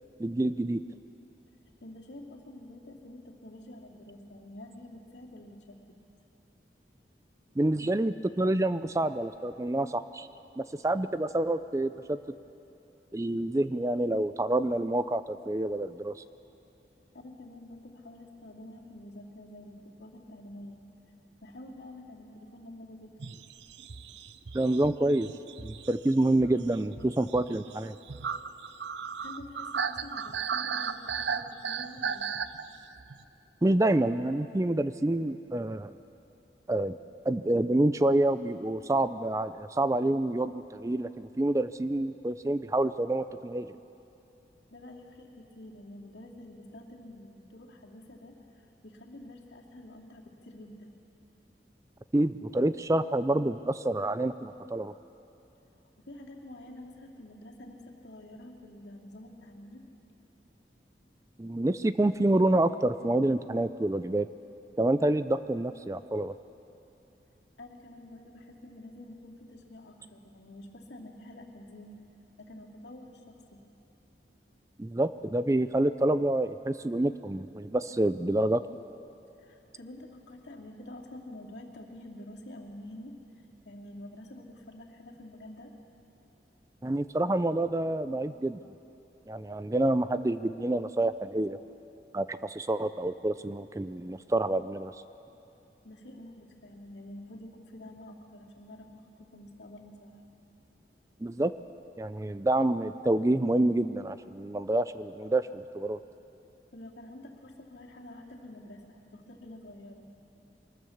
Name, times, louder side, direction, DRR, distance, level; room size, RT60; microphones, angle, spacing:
voice 1, 0.2-0.8 7.6-10.3 10.6-12.2 13.1-16.1 24.5-25.3 25.6-28.0 33.6-35.9 36.7-37.0 37.3-43.8 52.1-54.9 61.4-64.3 64.8-66.4 74.8-78.6 86.8-88.6 89.3-91.6 92.1-94.9 101.2-101.5 102.0-106.0, right 1 dB, 20° right, 13 dB, 0.4 m, -27 dB
voice 2, 1.8-6.0 17.1-20.8 21.4-23.2 29.2-32.3 44.7-50.9 56.0-59.8 67.6-72.0 72.4-73.6 79.4-83.2 83.6-85.8 95.8-100.1 106.7-110.1, left 1 dB, 85° left, 0 dB, 2.6 m, -48 dB
sound 1, 23.2-33.2, right 6 dB, 85° right, 0.6 m, -36 dB
23.5 x 19.5 x 7.2 m, 2.8 s
head